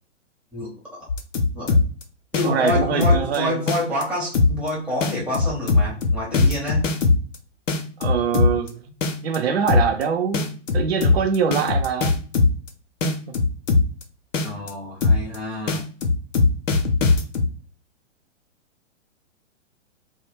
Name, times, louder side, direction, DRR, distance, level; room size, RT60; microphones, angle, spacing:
voice 1, 0.5-1.0 1.5-1.7 2.3-6.9 14.4-15.8, left 1 dB, 5° right, 0.6 m, -27 dB
sound 1, 1.1-2.0 2.3-3.3 3.7-4.0 4.3-4.7 5.0-7.3 7.7-8.7 9.0-9.4 9.7-10.0 10.3-12.7 13.0-14.0 14.3-14.7 15.0-15.3 15.7-17.5, left 3 dB, 75° left, 0.6 m, -19 dB
voice 2, 2.4-3.6 8.0-8.8 9.2-12.2 13.0-13.1, right 6 dB, 55° right, 0.5 m, -24 dB
2.1 x 2.1 x 3.2 m
figure-of-eight pair, 115°, 38 cm